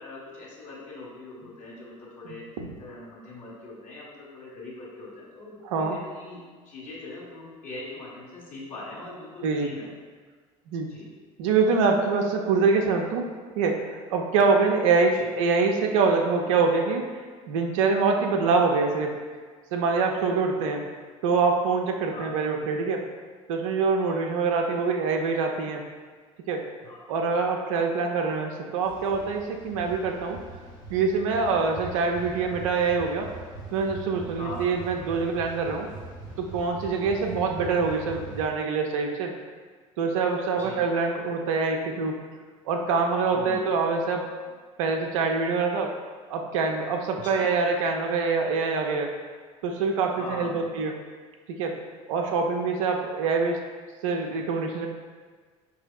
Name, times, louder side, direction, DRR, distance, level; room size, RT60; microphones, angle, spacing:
voice 1, 0.0-2.4 2.8-9.9 10.9-11.1 15.1-15.3 20.6-20.7 22.1-22.3 26.8-27.1 34.4-34.6 40.6-40.8 43.3-43.6 47.2-47.5 50.2-50.7 52.2-52.4, left 2 dB, 50° left, -5 dB, 1.5 m, -41 dB
voice 2, 5.6-6.0 9.4-9.7 10.7-10.9 11.4-17.1 17.5-19.2 19.7-20.8 21.2-23.0 23.5-25.8 26.5-26.6 27.1-30.4 30.9-33.3 33.7-35.9 36.4-39.3 40.0-42.1 42.7-44.3 44.8-45.9 46.3-49.1 49.6-50.9 51.5-51.7 52.1-53.6 54.0-54.9, right 4 dB, 75° right, 2 dB, 0.5 m, -25 dB
sound 1, 28.8-38.5, right 3 dB, 90° left, 1.0 m, -42 dB
4.9 x 2.7 x 2.3 m, 1.5 s
hypercardioid pair, 70°, 17 cm